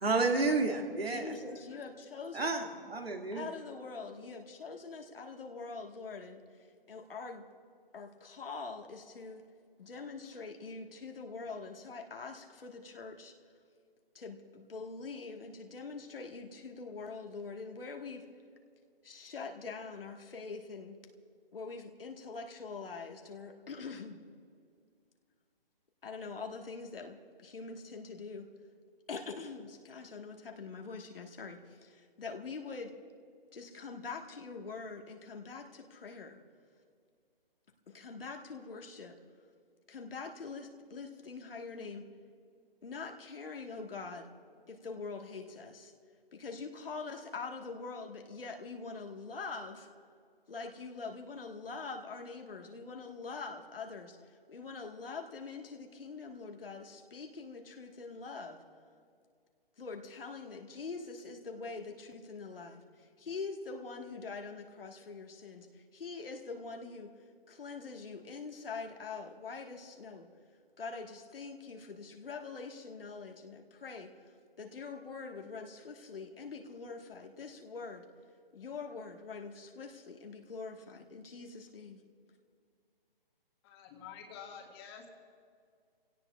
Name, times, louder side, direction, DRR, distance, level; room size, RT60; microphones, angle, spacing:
voice 1, 0.0-1.4 2.3-3.5, right 3 dB, 85° right, 3 dB, 2.1 m, -31 dB
voice 2, 1.1-2.7 3.3-7.4 7.9-9.4 9.8-13.3 14.1-18.3 19.0-21.0 21.5-24.2 26.0-28.5 29.1-32.9 33.5-36.4 37.9-39.2 39.9-42.1 42.8-44.3 44.7-45.9 46.3-49.9 50.5-58.6 59.8-67.1 67.5-70.3 70.8-78.1 78.5-82.0, left 4 dB, 70° left, 3 dB, 1.6 m, -44 dB
voice 3, 83.6-85.1, left 7 dB, 25° left, 1 dB, 1.8 m, -48 dB
28.0 x 17.0 x 2.4 m, 2.2 s
figure-of-eight pair, 145°, 30 cm